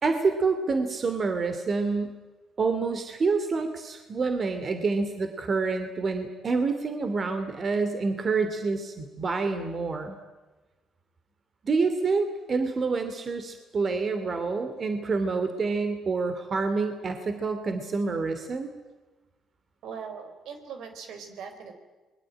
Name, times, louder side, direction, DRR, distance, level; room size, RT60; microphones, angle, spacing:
voice 1, 0.0-2.2 2.6-10.2 11.6-18.7, right 4 dB, 45° right, 8 dB, 2.7 m, -27 dB
voice 2, 19.8-21.7, right 6 dB, 75° right, 7 dB, 4.3 m, -41 dB
27.5 x 21.5 x 9.0 m, 1.2 s
cardioid pair, 85°, 0 cm